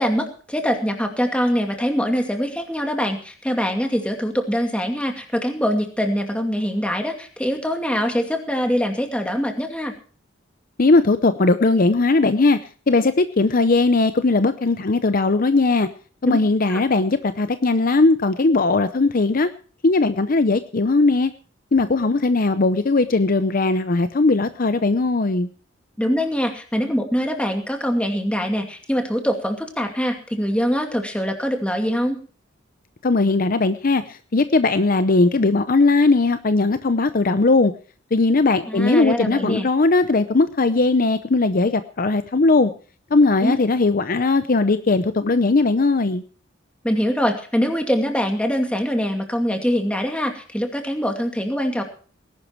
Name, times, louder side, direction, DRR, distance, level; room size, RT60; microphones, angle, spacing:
voice 1, 0.0-9.9 16.3-16.4 16.7-16.8 26.0-32.2 38.7-39.7 43.4-43.6 46.8-51.8, equal, 5° left, 4 dB, 2.4 m, -23 dB
voice 2, 10.8-12.6 12.9-15.9 16.2-19.5 19.8-21.3 21.7-25.5 33.0-37.7 38.1-42.7 43.1-46.2, left 3 dB, 45° left, 11 dB, 0.7 m, -18 dB
19.5 x 11.5 x 4.6 m, 0.41 s
head